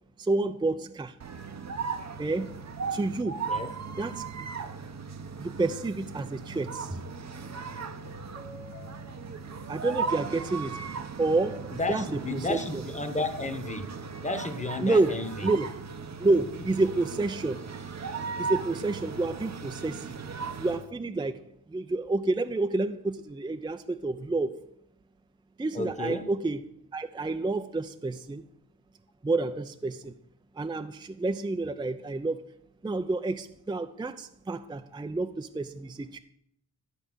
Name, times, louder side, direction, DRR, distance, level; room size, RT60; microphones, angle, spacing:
voice 1, 0.2-1.1 2.2-2.5 2.9-3.4 4.0-4.5 5.4-7.0 9.7-10.8 11.2-12.0 12.3-12.8 14.8-15.2 15.4-15.7 16.2-17.6 18.4-20.2 20.6-21.4 21.7-24.5 25.6-26.6 26.9-28.4 29.2-30.1 30.6-32.4 32.8-36.2, right 2 dB, 10° right, 9 dB, 0.5 m, -29 dB
sound 1, 1.2-20.9, right 5 dB, 40° right, 0.8 m, -37 dB
sound 2, 6.6-11.2, left 1 dB, 70° left, 1.9 m, -53 dB
voice 2, 11.8-13.9 14.2-15.5 25.7-26.3, left 2 dB, 15° left, 8 dB, 1.2 m, -33 dB
11.5 x 4.8 x 6.3 m, 0.70 s
cardioid pair, 65°, 43 cm